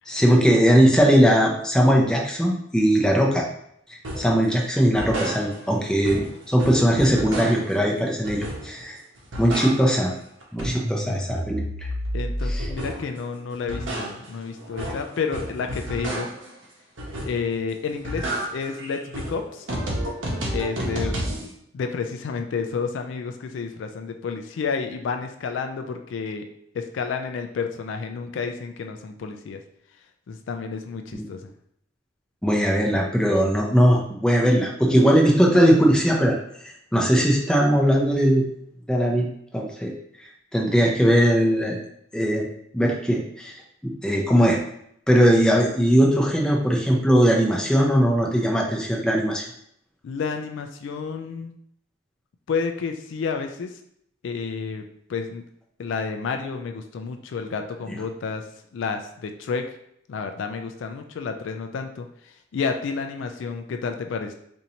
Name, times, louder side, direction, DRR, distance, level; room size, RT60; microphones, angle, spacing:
voice 1, 0.1-3.5 3.9-9.0 9.4-10.1 10.5-11.9 12.4-12.7 31.1-31.3 32.4-36.4 36.6-38.4 38.9-39.3 39.5-39.9 40.2-41.8 42.1-42.5 42.7-44.6 45.1-49.4, equal, 5° left, -1 dB, 0.5 m, -20 dB
sound 1, 4.0-4.4 4.8-5.8 6.0-7.8 8.2-8.9 9.2-10.1 10.4-13.1 13.5-16.5 17.0-17.6 17.9-21.5, right 1 dB, 70° right, 0.9 m, -31 dB
voice 2, 12.1-16.3 17.2-18.3 18.5-19.7 20.5-21.2 21.7-26.4 26.7-29.6 30.3-31.5 50.0-51.5 52.5-53.7 54.2-54.8 55.1-55.4 55.8-58.4 58.7-59.6 60.1-64.3, left 5 dB, 70° left, 6 dB, 0.3 m, -30 dB
4.4 x 2.6 x 2.7 m, 0.71 s
head